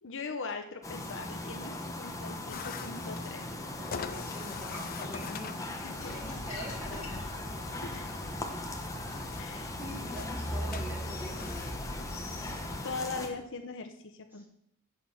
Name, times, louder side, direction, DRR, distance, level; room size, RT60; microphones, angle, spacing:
voice 1, 0.0-3.5 5.8-6.1 7.8-8.1 9.4-9.8 10.2-10.3 12.8-14.5, left 4 dB, 60° left, 6 dB, 0.9 m, -40 dB
sound 1, 0.8-13.3, left 1 dB, 15° left, 1.1 m, -38 dB
voice 2, 1.4-1.7 3.8-7.6 9.2-12.2 12.8-13.1 14.3-14.5, equal, 10° right, -2 dB, 2.5 m, -46 dB
sound 2, 2.5-11.7, left 7 dB, 45° left, 0.5 m, -46 dB
sound 3, 6.0-12.8, left 1 dB, 80° left, 2.3 m, -44 dB
8.4 x 6.8 x 5.7 m, 0.70 s
head